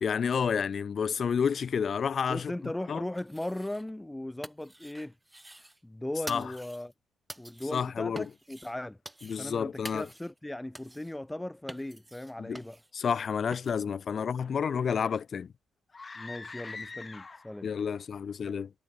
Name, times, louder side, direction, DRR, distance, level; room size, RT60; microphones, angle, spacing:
voice 1, 0.0-2.5 2.9-3.0 6.3-6.5 7.7-8.2 9.2-10.1 12.4-12.6 12.9-15.5 17.6-18.7, left 7 dB, 50° left, 1.3 m, -30 dB
voice 2, 2.3-5.1 5.8-6.9 7.4-9.0 9.3-12.8 16.2-17.7, left 1 dB, 10° left, 0.6 m, -38 dB
sound 1, 3.1-4.0 4.2-5.8 6.3-6.9 7.3-7.8 8.2-8.7 9.0-9.6 9.8-10.4 10.7-11.1 11.7-12.9 13.5-13.8, right 1 dB, 10° right, 2.6 m, -47 dB
sound 2, 15.9-17.7, left 4 dB, 30° left, 3.7 m, -43 dB
cardioid pair, 90°, 0 cm